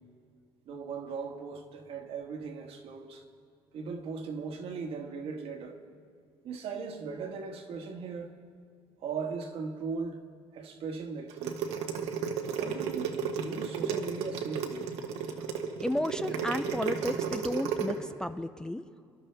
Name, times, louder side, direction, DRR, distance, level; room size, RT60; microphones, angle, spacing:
voice 1, 0.7-3.2 3.7-5.8 6.4-8.4 9.0-10.2 10.5-11.6 12.5-14.9, right 5 dB, 60° right, 1.4 m, -38 dB
sound 1, 11.3-17.9, right 7 dB, 85° right, 1.2 m, -33 dB
voice 2, 15.8-18.8, left 1 dB, 5° left, 0.3 m, -33 dB
25.0 x 11.5 x 3.4 m
cardioid pair, 120°, 11 cm